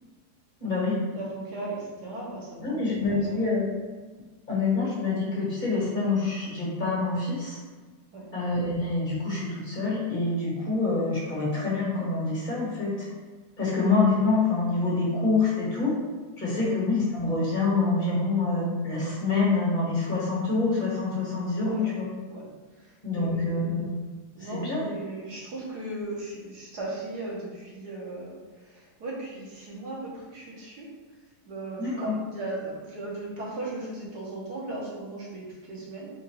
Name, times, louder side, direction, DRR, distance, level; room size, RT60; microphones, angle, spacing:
voice 1, 0.6-1.0 2.6-3.6 4.5-7.6 8.3-13.1 13.6-15.9 16.4-22.1 23.0-23.9 24.4-24.9 31.8-32.1, left 3 dB, 30° left, -6 dB, 1.6 m, -26 dB
voice 2, 1.1-3.5 8.1-8.2 16.6-16.7 21.6-21.9 22.3-23.8 24.3-30.9 31.5-36.1, right 2 dB, 80° right, -5 dB, 1.8 m, -37 dB
4.5 x 2.5 x 4.7 m, 1.3 s
omnidirectional pair, 1.7 m